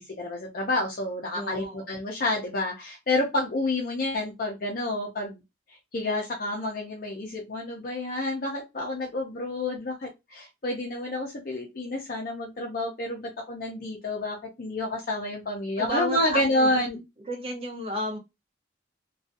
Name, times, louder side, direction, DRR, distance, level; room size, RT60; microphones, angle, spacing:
voice 1, 0.0-5.4 5.7-16.9, left 2 dB, 50° left, 0.5 m, -29 dB
voice 2, 1.3-1.9 15.8-17.0 17.3-18.2, equal, 30° right, 0.7 m, -33 dB
2.6 x 2.3 x 2.5 m
head